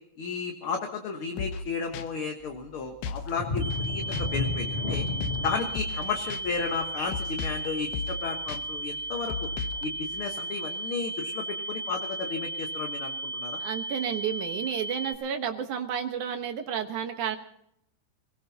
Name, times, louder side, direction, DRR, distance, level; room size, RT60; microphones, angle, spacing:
voice 1, 0.2-5.0 5.4-9.5 9.8-13.6, left 5 dB, 50° left, 3 dB, 1.8 m, -33 dB
sound 1, 1.4-1.7 1.9-2.1 3.0-3.3 3.6-3.9 4.1-4.2 4.9-5.5 5.8-6.0 6.3-6.4 7.1-7.7 7.9-8.2 8.5-8.6 9.3-9.9, left 5 dB, 85° left, 2.5 m, -34 dB
sound 2, 3.3-8.8 9.2-9.4 9.9-10.0, left 3 dB, 70° left, 0.5 m, -33 dB
sound 3, 3.6-15.1, right 2 dB, 25° right, 3.3 m, -35 dB
voice 2, 13.6-17.4, right 8 dB, 75° right, 6 dB, 2.6 m, -31 dB
26.5 x 18.0 x 2.9 m, 0.73 s
omnidirectional pair, 3.6 m